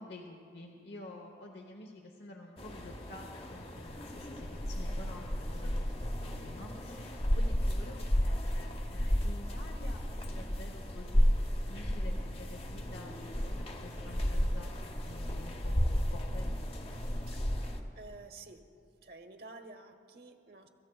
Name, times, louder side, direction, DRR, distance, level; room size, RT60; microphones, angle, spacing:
voice 1, 0.0-16.6, left 2 dB, 75° left, 2 dB, 0.9 m, -50 dB
sound 1, 2.6-17.8, equal, 30° left, 0.8 m, -33 dB
voice 2, 17.9-18.6 19.0-20.7, right 3 dB, 55° right, 7 dB, 0.9 m, -50 dB
24.5 x 14.5 x 2.3 m, 2.4 s
head